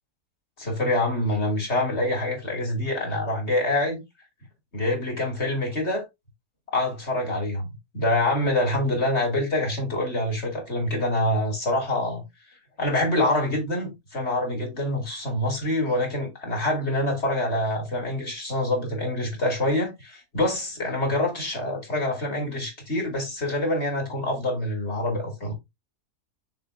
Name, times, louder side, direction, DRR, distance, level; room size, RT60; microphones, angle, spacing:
voice 1, 0.6-4.0 4.7-6.0 6.7-12.2 12.8-25.5, left 1 dB, 40° left, 3.0 m, -26 dB
6.5 x 6.3 x 2.6 m
omnidirectional pair, 1.7 m